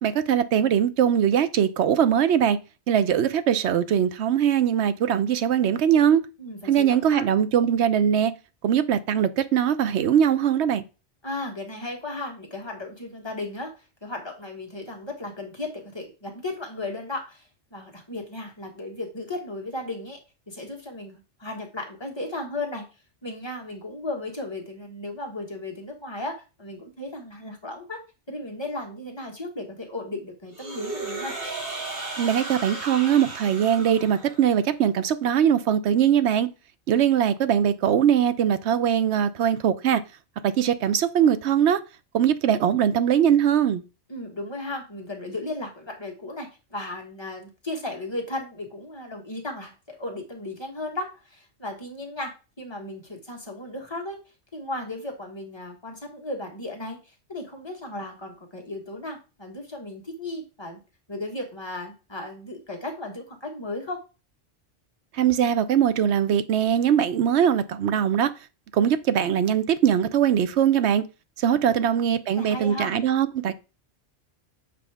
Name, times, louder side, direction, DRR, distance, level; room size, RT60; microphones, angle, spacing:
voice 1, 0.0-2.6 2.9-6.2 6.7-8.3 8.6-10.8 32.2-36.5 36.9-40.0 40.4-41.8 42.1-43.8 65.1-68.3 68.7-71.0 71.4-73.5, right 9 dB, 70° right, 0.9 m, -21 dB
voice 2, 6.4-7.3 11.2-20.2 20.5-22.8 23.2-28.0 28.3-31.4 36.9-37.0 44.1-54.2 54.5-60.8 61.1-64.0 71.7-71.8 72.3-73.0, left 2 dB, 20° left, 1.7 m, -35 dB
sound 1, 30.5-34.6, right 3 dB, 50° right, 2.9 m, -35 dB
7.6 x 5.0 x 3.5 m
omnidirectional pair, 1.3 m